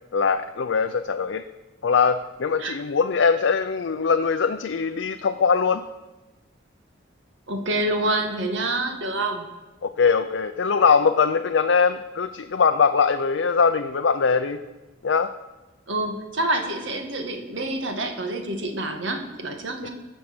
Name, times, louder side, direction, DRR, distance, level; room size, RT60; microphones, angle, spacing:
voice 1, 0.1-1.4 1.8-5.8 9.8-14.6 15.0-15.3, left 5 dB, 70° left, 7 dB, 0.5 m, -21 dB
voice 2, 7.5-9.5 15.9-19.9, right 2 dB, 75° right, 4 dB, 1.7 m, -27 dB
20.5 x 7.3 x 6.1 m, 1.1 s
head